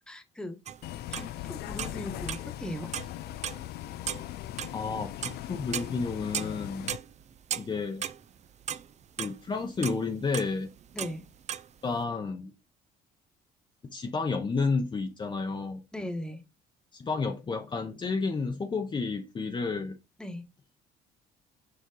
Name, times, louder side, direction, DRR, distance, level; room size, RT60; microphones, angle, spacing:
voice 1, 0.1-0.6 1.1-2.9 10.9-11.2 15.9-16.4 20.2-20.4, left 1 dB, 5° left, 1.2 m, -38 dB
sound 1, 0.7-1.3 1.6-2.6 2.9-3.7 3.9-6.6 6.9-9.3 9.8-11.7, right 9 dB, 40° right, 0.6 m, -36 dB
Bus, 0.8-7.0, left 14 dB, 70° left, 0.4 m, -39 dB
voice 2, 4.7-6.9 7.6-8.0 9.2-10.7 11.8-12.5 13.9-15.8 16.9-20.0, left 4 dB, 30° left, 0.9 m, -31 dB
6.8 x 4.5 x 3.8 m
cardioid pair, 110°, 17 cm